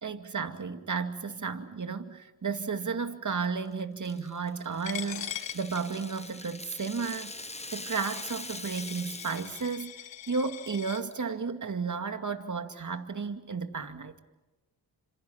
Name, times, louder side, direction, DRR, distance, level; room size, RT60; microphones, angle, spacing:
voice 1, 0.0-7.3 7.7-14.2, right 5 dB, 40° right, 2.3 m, -33 dB
Rattle (instrument), 4.0-9.8 10.1-10.3 10.7-11.1, left 2 dB, 15° left, 1.2 m, -43 dB
Coin (dropping), 4.9-11.0, left 12 dB, 75° left, 1.0 m, -42 dB
30.0 x 27.0 x 5.9 m
supercardioid pair, 45°, 45 cm